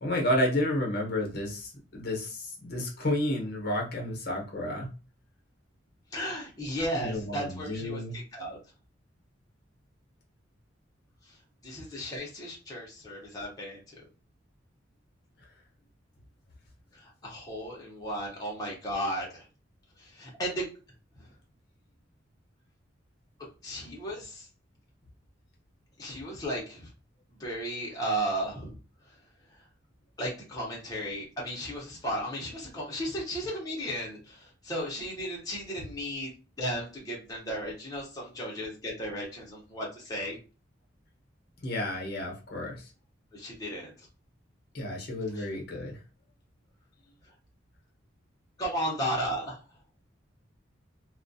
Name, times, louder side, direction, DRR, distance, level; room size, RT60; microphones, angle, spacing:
voice 1, 0.0-4.9 6.9-8.2 41.6-42.9 44.7-46.0, left 1 dB, 55° left, 0 dB, 0.7 m, -31 dB
voice 2, 6.1-8.6 11.2-11.4 11.6-14.1 16.9-19.5 20.0-20.7 21.2-21.3 23.6-24.5 26.0-26.9 27.4-28.8 29.1-29.2 29.5-29.6 30.2-36.3 36.6-40.4 43.3-44.1 45.3-45.5 48.6-49.6, equal, 20° left, -3 dB, 0.7 m, -35 dB
2.2 x 2.1 x 2.5 m, 0.34 s
head